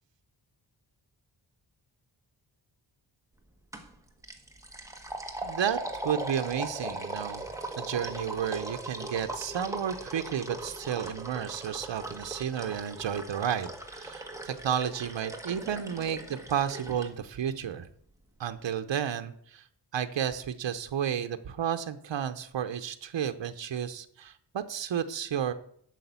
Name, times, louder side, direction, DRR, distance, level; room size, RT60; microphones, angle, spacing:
sound 1, 3.7-3.9 4.2-17.1, right 1 dB, 5° right, 1.3 m, -39 dB
voice 1, 5.4-5.8 6.0-7.4 7.8-17.9 18.4-19.7 19.9-25.5, right 8 dB, 80° right, 9 dB, 0.8 m, -32 dB
8.4 x 6.4 x 8.1 m, 0.65 s
wide cardioid pair, 140°, 44 cm